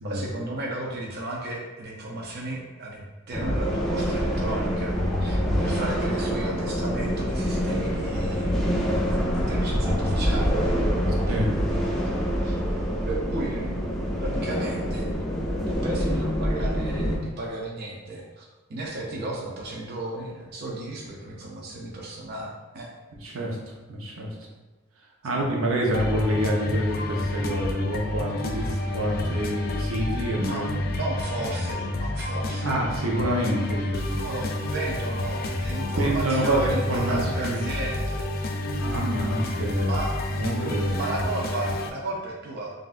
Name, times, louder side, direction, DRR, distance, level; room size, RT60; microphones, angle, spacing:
voice 1, 0.0-9.1 9.3-10.5 11.1-11.4 12.0-12.1 12.4-12.5 13.1-13.9 14.2-15.1 15.7-22.9 25.2-25.4 30.5-32.8 34.2-38.3 39.8-40.1 40.9-42.7, right 2 dB, 50° right, -3 dB, 0.6 m, -34 dB
sound 1, 3.3-17.2, equal, ahead, 0.6 m, -26 dB
voice 2, 23.2-23.6 23.9-24.3 25.2-30.7 32.6-34.5 35.9-37.6 38.8-40.0 40.3-41.1, equal, 90° right, -2 dB, 0.8 m, -27 dB
sound 2, 25.9-41.9, left 1 dB, 45° left, 0.4 m, -29 dB
5.6 x 2.6 x 2.4 m, 1.2 s
head